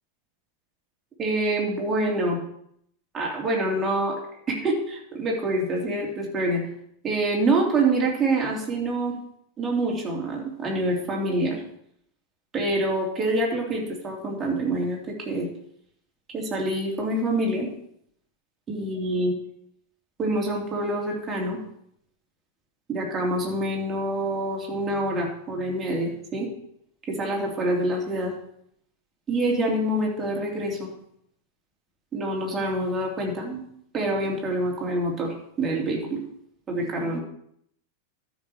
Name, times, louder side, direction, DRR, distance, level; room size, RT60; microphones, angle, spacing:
voice 1, 1.2-2.4 3.1-4.2 4.5-6.7 7.0-9.2 9.6-11.6 12.5-15.5 16.3-17.7 18.7-19.3 20.2-21.6 22.9-26.5 27.1-28.3 29.3-30.9 32.1-33.6 33.9-36.2 36.7-37.2, right 1 dB, 20° right, -2 dB, 3.1 m, -26 dB
13.0 x 6.3 x 4.7 m, 0.71 s
figure-of-eight pair, 90°, 0 cm